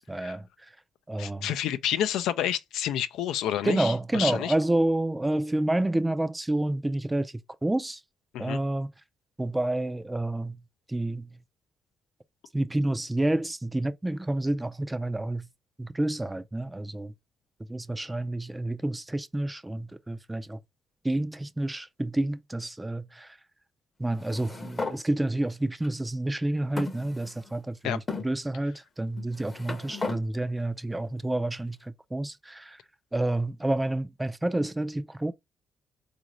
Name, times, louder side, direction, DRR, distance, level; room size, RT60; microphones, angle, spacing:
voice 1, 0.1-0.5 1.1-1.5 3.6-7.3 7.6-8.0 8.4-8.9 9.4-10.6 10.9-11.3 12.5-15.5 15.8-17.1 17.7-20.6 21.0-23.3 24.0-32.8 33.1-35.3, right 1 dB, 10° right, 0.4 m, -29 dB
voice 2, 1.2-4.5 8.3-8.6 27.8-28.0, left 11 dB, 85° left, 0.3 m, -29 dB
sound 1, 24.2-25.0 25.8-25.9 26.8-27.6 28.1-28.3 29.2-30.2, left 3 dB, 25° left, 0.7 m, -35 dB
3.9 x 2.5 x 3.0 m
cardioid pair, 90°, 0 cm